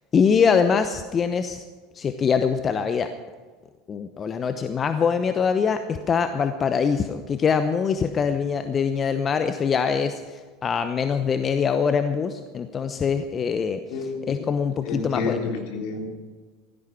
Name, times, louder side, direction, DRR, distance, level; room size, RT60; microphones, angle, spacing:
voice 1, 0.1-1.6 1.9-3.1 3.9-13.8 14.3-15.5, left 6 dB, 30° left, 9 dB, 0.9 m, -23 dB
voice 2, 13.9-14.5 14.8-16.1, left 4 dB, 60° left, 1 dB, 3.3 m, -30 dB
16.5 x 13.5 x 6.0 m, 1.4 s
hypercardioid pair, 80°, 0 cm